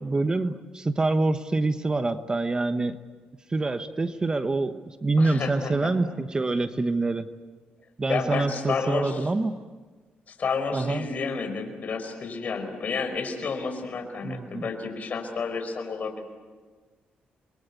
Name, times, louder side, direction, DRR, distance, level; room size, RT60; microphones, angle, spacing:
voice 1, 0.0-3.0 3.5-7.3 8.0-9.6 10.7-11.1 14.2-14.7, right 3 dB, 25° right, 9 dB, 1.1 m, -26 dB
voice 2, 5.2-5.9 8.1-9.2 10.3-16.2, left 4 dB, 50° left, 6 dB, 5.1 m, -30 dB
28.0 x 22.5 x 8.4 m, 1.4 s
cardioid pair, 105°, 3 cm